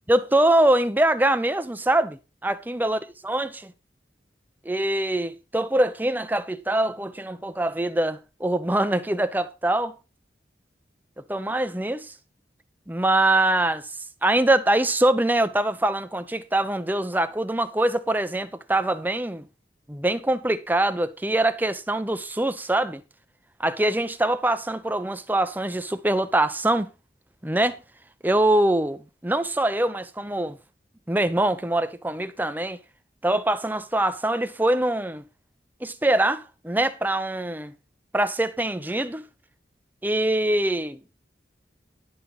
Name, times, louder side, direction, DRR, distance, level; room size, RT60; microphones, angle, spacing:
voice 1, 0.1-3.0 3.2-3.7 4.6-9.9 11.3-12.1 12.9-13.9 14.2-19.5 19.9-23.0 23.6-26.9 27.4-27.8 28.2-30.6 31.1-32.8 33.2-35.2 35.8-37.7 38.1-39.2 40.0-41.0, right 1 dB, 10° right, 0.7 m, -23 dB
11.0 x 6.0 x 5.4 m
head